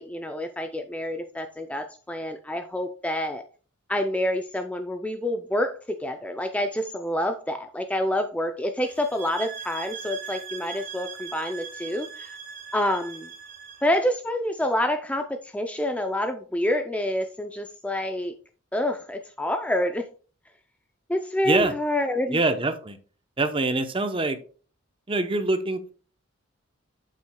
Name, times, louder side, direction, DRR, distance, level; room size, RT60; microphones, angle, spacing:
voice 1, 0.0-3.4 3.9-12.3 12.7-13.3 13.8-18.3 18.7-20.1 21.1-22.4, left 1 dB, 5° left, 6 dB, 0.4 m, -27 dB
sound 1, 8.9-13.9, right 7 dB, 40° right, 2.7 m, -40 dB
voice 2, 22.3-23.0 23.4-24.4 25.1-25.9, right 2 dB, 25° right, 9 dB, 0.7 m, -24 dB
8.5 x 7.6 x 2.2 m, 0.39 s
head